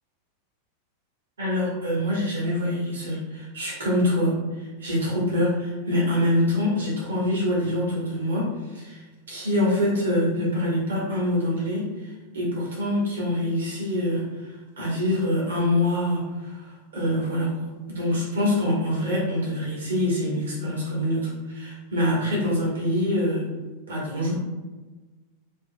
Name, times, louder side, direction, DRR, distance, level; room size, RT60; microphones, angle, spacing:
voice 1, 1.4-9.0 9.3-11.9 12.3-23.4 23.9-24.4, left 1 dB, 70° right, -5 dB, 1.3 m, -25 dB
4.5 x 2.4 x 2.2 m, 1.2 s
figure-of-eight pair, 90°, 0 cm